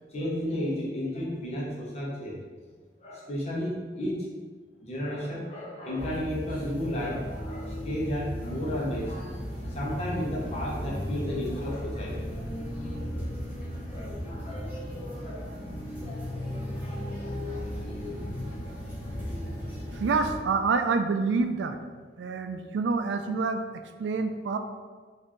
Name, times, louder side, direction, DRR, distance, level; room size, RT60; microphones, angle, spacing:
voice 1, 0.1-2.4 3.0-4.3 4.8-12.5 12.8-13.3 13.9-15.7 16.0-18.3, equal, 40° left, -4 dB, 0.9 m, -34 dB
sound 1, 6.0-20.4, left 1 dB, 10° right, 1.2 m, -35 dB
voice 2, 19.9-21.8 22.2-24.6, right 4 dB, 80° right, 7 dB, 0.3 m, -27 dB
4.2 x 2.6 x 3.0 m, 1.5 s
head